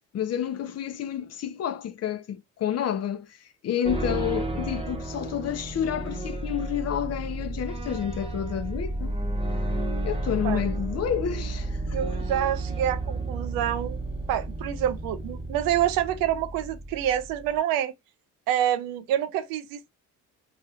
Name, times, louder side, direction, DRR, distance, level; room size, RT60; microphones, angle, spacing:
voice 1, 0.1-3.4 3.6-9.1 10.0-12.0, left 9 dB, 50° left, 0.6 m, -30 dB
sound 1, 3.8-17.6, right 2 dB, 15° right, 0.8 m, -32 dB
voice 2, 11.9-14.0 14.3-17.9 18.5-19.9, right 11 dB, 85° right, 0.6 m, -27 dB
3.2 x 2.8 x 2.3 m
supercardioid pair, 80°, 33 cm